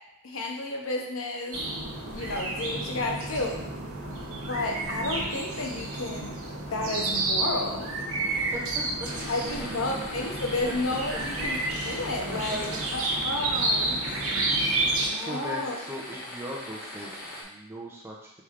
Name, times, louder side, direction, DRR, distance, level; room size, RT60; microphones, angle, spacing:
voice 1, 0.2-1.6 2.1-3.6 4.5-6.4 6.7-7.9 9.3-14.0 15.0-15.8, left 2 dB, 65° left, 0 dB, 0.8 m, -32 dB
sound 1, 1.5-15.1, right 2 dB, 70° right, 0.9 m, -30 dB
voice 2, 8.5-9.3 9.6-9.7 10.7-10.8 11.1-11.4 11.9-12.0 12.3-12.8 13.6-14.0 15.1-18.4, right 1 dB, 10° right, -3 dB, 0.5 m, -40 dB
sound 2, 9.0-17.4, left 1 dB, 45° left, 1.1 m, -41 dB
4.7 x 4.3 x 2.5 m, 0.88 s
head